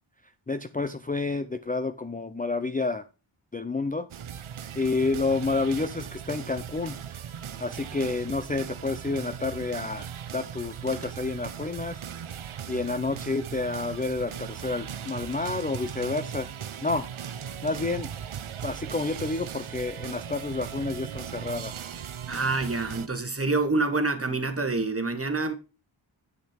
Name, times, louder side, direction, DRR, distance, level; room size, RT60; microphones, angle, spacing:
voice 1, 0.5-3.1 3.5-4.1 4.8-7.0 7.6-10.1 10.3-12.0 12.7-16.5 16.8-17.1 17.6-18.1 18.6-21.7, left 3 dB, 20° left, 0.5 m, -29 dB
sound 1, 4.1-23.1, right 8 dB, 80° right, 0.8 m, -38 dB
voice 2, 22.3-25.5, right 3 dB, 30° right, 1.3 m, -27 dB
8.3 x 6.1 x 4.4 m
wide cardioid pair, 80°, 49 cm